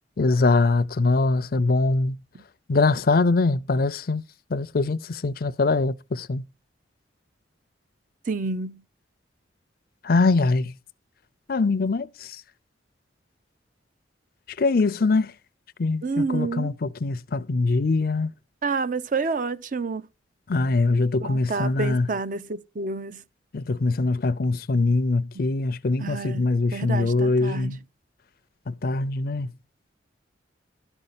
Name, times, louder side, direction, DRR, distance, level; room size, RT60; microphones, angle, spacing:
voice 1, 0.2-2.2 2.7-4.2 4.5-6.4 10.0-10.7 11.5-12.4 14.6-15.3 15.8-18.3 20.5-22.1 23.5-27.8 28.7-29.5, left 3 dB, 55° left, 0.5 m, -23 dB
voice 2, 8.3-8.8 16.0-16.7 18.6-20.0 21.2-23.2 25.3-25.5 26.0-27.8, right 4 dB, 45° right, 0.6 m, -29 dB
12.5 x 5.3 x 5.7 m
head